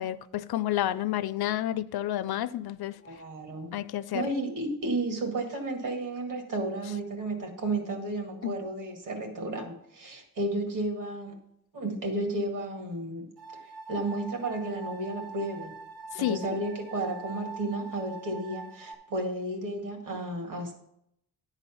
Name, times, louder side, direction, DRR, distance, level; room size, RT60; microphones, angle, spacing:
voice 1, 0.0-2.9 3.7-4.3 8.4-8.5 16.1-16.6, left 13 dB, 80° left, 0.5 m, -30 dB
voice 2, 3.0-3.7 4.1-11.3 11.7-13.3 13.6-15.7 16.2-20.7, right 2 dB, 55° right, 2.0 m, -33 dB
sound 1, 13.4-18.9, right 3 dB, 85° right, 3.0 m, -44 dB
10.5 x 4.1 x 6.9 m
wide cardioid pair, 145°, 37 cm